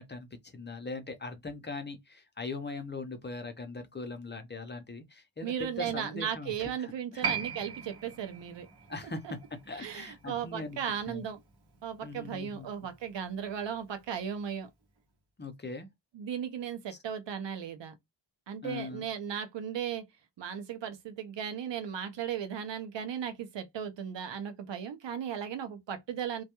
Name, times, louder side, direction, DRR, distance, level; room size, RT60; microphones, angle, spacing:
voice 1, 0.0-6.7 7.1-7.2 8.9-9.4 9.7-10.8 11.1-11.3 12.0-12.7 15.4-15.9 18.6-19.0, left 3 dB, 25° left, 0.5 m, -40 dB
voice 2, 5.4-8.7 9.2-9.3 9.8-11.4 11.8-14.7 16.1-17.9 18.5-20.0 20.4-26.4, right 8 dB, 80° right, 0.7 m, -36 dB
Piano, 7.2-14.2 14.4-14.5, right 6 dB, 65° right, 0.9 m, -40 dB
2.2 x 2.1 x 2.9 m
wide cardioid pair, 85°, 43 cm